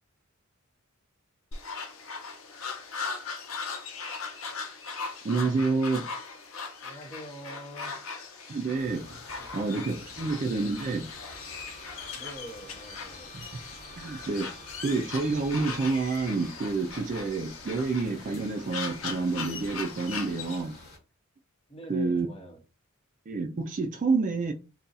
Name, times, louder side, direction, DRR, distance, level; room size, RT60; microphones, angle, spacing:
sound 1, 1.5-20.6, left 5 dB, 70° left, 0.7 m, -39 dB
voice 1, 5.2-6.0 8.5-9.1 9.5-11.1 13.3-13.5 14.0-14.5 14.8-20.8 21.9-22.3 23.3-24.5, right 3 dB, 35° right, 0.4 m, -28 dB
voice 2, 6.8-8.0 9.4-9.6 10.1-10.3 12.1-13.3 21.7-22.6, equal, 25° left, 1.0 m, -45 dB
sound 2, 8.7-21.0, left 2 dB, 50° left, 1.2 m, -50 dB
Bowed string instrument, 11.2-16.6, right 5 dB, ahead, 0.9 m, -54 dB
2.6 x 2.2 x 3.9 m
head